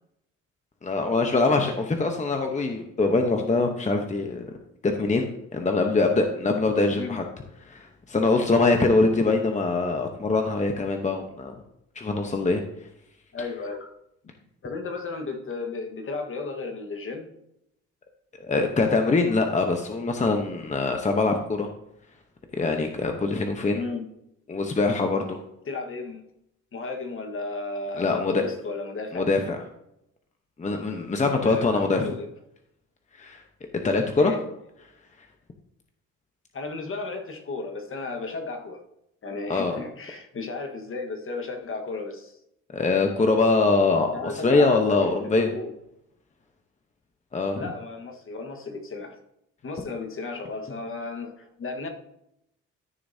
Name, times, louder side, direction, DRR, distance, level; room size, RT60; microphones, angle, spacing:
voice 1, 0.8-4.5 4.8-5.3 5.5-7.2 7.6-11.5 12.0-12.6 18.4-21.7 22.6-23.8 24.5-25.4 28.0-28.4 29.1-29.6 30.6-32.1 33.2-33.4 33.7-34.3 39.5-39.8 42.7-45.5 47.3-47.7, left 3 dB, 25° left, 4 dB, 0.9 m, -23 dB
voice 2, 13.3-13.9 14.6-17.3 23.7-24.0 25.7-26.2 26.7-29.3 31.3-32.1 34.2-34.4 36.5-38.8 39.2-42.3 44.1-45.7 47.5-49.2 49.6-51.9, left 3 dB, 45° left, 4 dB, 1.5 m, -34 dB
13.5 x 6.6 x 2.8 m, 0.80 s
cardioid pair, 90°, 30 cm